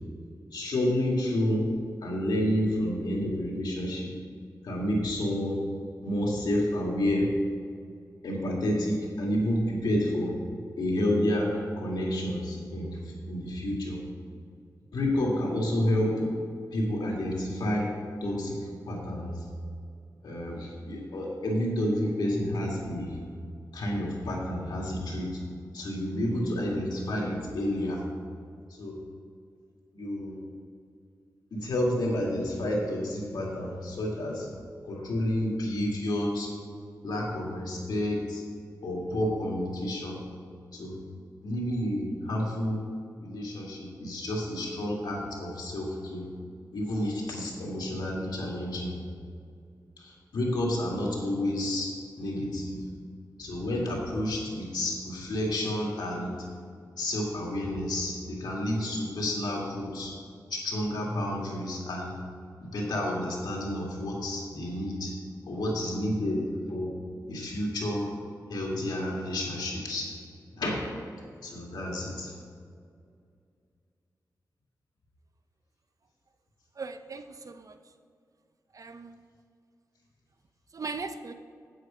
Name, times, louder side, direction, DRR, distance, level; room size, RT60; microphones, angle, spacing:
voice 1, 0.5-1.7 2.0-4.1 4.6-5.6 6.0-7.3 8.2-10.3 10.8-13.0 13.3-14.0 14.9-16.3 16.7-17.9 18.2-18.6 18.9-19.4 20.2-23.2 23.7-25.4 25.7-28.0 28.8-29.0 29.9-30.4 31.5-34.5 34.8-36.5 37.0-38.4 38.8-40.2 40.7-41.0 41.4-42.8 43.2-46.3 46.7-49.0 50.0-52.8 53.4-56.3 57.0-60.1 60.5-62.1 62.6-65.1 65.5-66.9 67.3-68.1 68.5-70.1 70.6-70.8 71.4-72.3, left 1 dB, 90° left, -2 dB, 2.2 m, -30 dB
voice 2, 76.8-77.7 78.7-79.2 80.7-81.3, right 4 dB, 55° right, 8 dB, 0.7 m, -38 dB
8.4 x 7.9 x 5.1 m, 2.3 s
cardioid pair, 70°, 7 cm